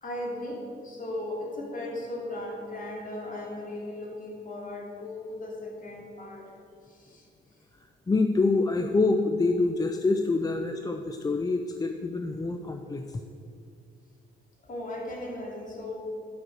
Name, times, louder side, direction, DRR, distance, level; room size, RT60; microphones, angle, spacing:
voice 1, 0.0-6.4 6.9-7.2 14.7-16.0, left 1 dB, 40° left, -1 dB, 2.6 m, -37 dB
voice 2, 8.1-13.1, left 3 dB, 20° left, 5 dB, 0.5 m, -26 dB
10.0 x 6.1 x 6.4 m, 2.5 s
cardioid pair, 90°, 20 cm